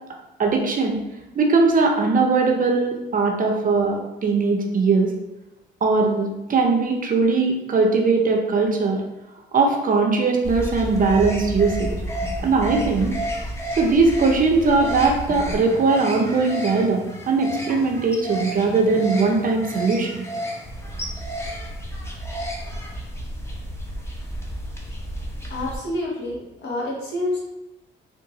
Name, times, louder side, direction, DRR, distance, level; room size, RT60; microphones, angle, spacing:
voice 1, 0.4-1.0 1.3-5.1 5.8-9.0 9.5-11.9 12.4-13.2 13.8-20.2, right 4 dB, 45° right, 1 dB, 0.6 m, -20 dB
sound 1, 10.4-25.8, equal, 15° left, 0.7 m, -31 dB
voice 2, 25.5-27.4, left 1 dB, 60° left, -4 dB, 1.2 m, -28 dB
3.6 x 2.5 x 2.9 m, 0.97 s
cardioid pair, 90°, 20 cm